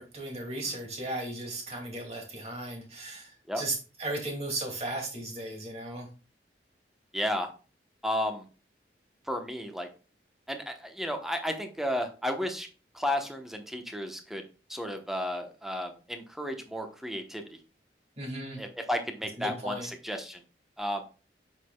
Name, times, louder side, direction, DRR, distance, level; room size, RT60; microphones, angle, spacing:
voice 1, 0.0-6.1 18.2-18.6 19.4-19.9, right 2 dB, 35° right, 1 dB, 2.2 m, -36 dB
voice 2, 7.1-7.5 8.0-8.4 9.3-9.9 10.5-12.7 12.9-14.4 14.7-17.4 18.5-20.4 20.8-21.0, left 1 dB, ahead, 5 dB, 0.9 m, -33 dB
8.0 x 6.3 x 2.2 m, 0.34 s
head